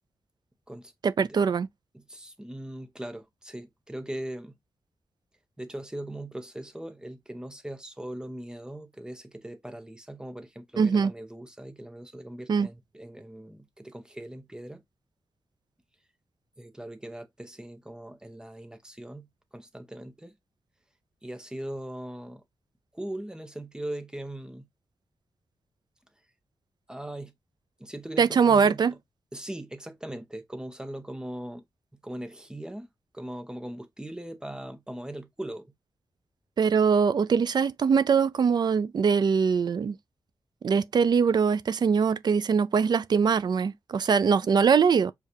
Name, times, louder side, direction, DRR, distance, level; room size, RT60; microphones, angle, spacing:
voice 1, 1.0-1.7 10.8-11.1 12.5-12.7 28.2-28.9 36.6-40.0 40.6-45.1, right 6 dB, 55° right, 0.4 m, -22 dB
voice 2, 1.9-4.5 5.6-14.8 16.6-19.3 19.5-20.3 21.2-22.4 22.9-24.7 26.9-27.3 27.8-29.0 29.3-31.6 32.0-32.9 33.1-35.7, right 1 dB, 10° right, 0.8 m, -40 dB
6.3 x 2.4 x 2.8 m
wide cardioid pair, 100°, 9 cm